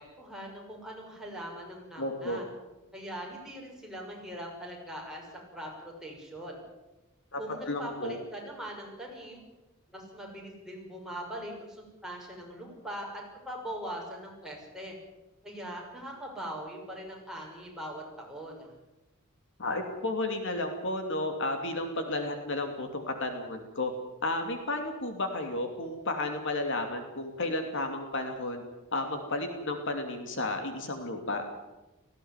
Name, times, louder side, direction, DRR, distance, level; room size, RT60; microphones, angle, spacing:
voice 1, 0.2-2.4 2.9-6.6 7.4-9.4 9.9-13.1 13.3-14.9 15.4-18.7, equal, 5° right, -2 dB, 6.2 m, -41 dB
voice 2, 2.0-2.4 7.3-7.4 7.7-8.2 19.6-23.9 24.2-28.6 28.9-31.5, left 2 dB, 60° left, 5 dB, 2.8 m, -32 dB
18.5 x 16.0 x 9.7 m, 1.0 s
head